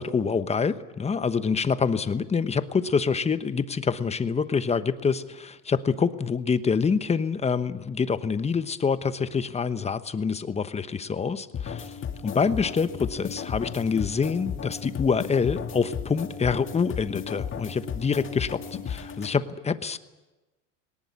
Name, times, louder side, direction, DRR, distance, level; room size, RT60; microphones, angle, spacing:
voice 1, 0.0-11.9 12.2-18.6 18.9-20.0, left 5 dB, 15° left, 12 dB, 1.1 m, -26 dB
sound 1, 11.5-19.3, left 7 dB, 35° left, 2.0 m, -35 dB
19.5 x 19.0 x 9.7 m, 1.1 s
supercardioid pair, 110°, 37 cm